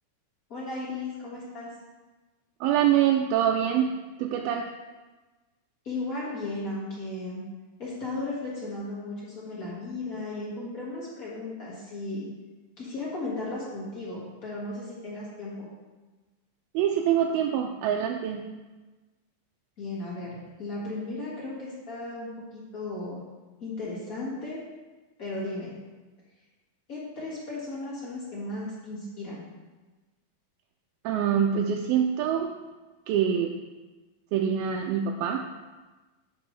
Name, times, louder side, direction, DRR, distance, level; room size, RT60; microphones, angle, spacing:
voice 1, 0.5-1.7 5.8-7.4 7.8-12.3 12.8-15.7 19.8-23.2 23.6-24.6 25.2-25.7 26.9-29.4, left 2 dB, 45° left, -7 dB, 1.1 m, -35 dB
voice 2, 2.6-3.9 4.2-4.6 16.7-18.4 31.0-32.5 33.1-33.5 34.3-35.4, right 9 dB, 85° right, 1 dB, 2.3 m, -25 dB
10.5 x 5.3 x 3.2 m, 1.2 s
omnidirectional pair, 4.3 m